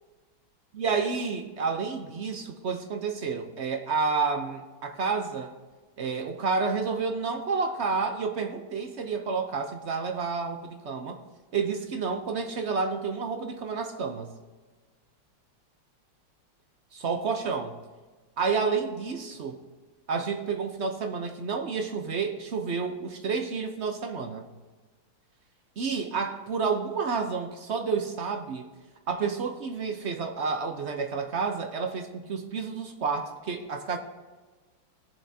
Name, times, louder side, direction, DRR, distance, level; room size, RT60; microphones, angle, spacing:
voice 1, 0.7-5.5 6.0-11.2 11.5-14.3 16.9-17.8 18.4-19.6 20.1-24.5 25.8-28.7 29.1-34.0, right 5 dB, 60° right, 4 dB, 0.7 m, -30 dB
19.5 x 7.3 x 2.8 m, 1.4 s
omnidirectional pair, 2.1 m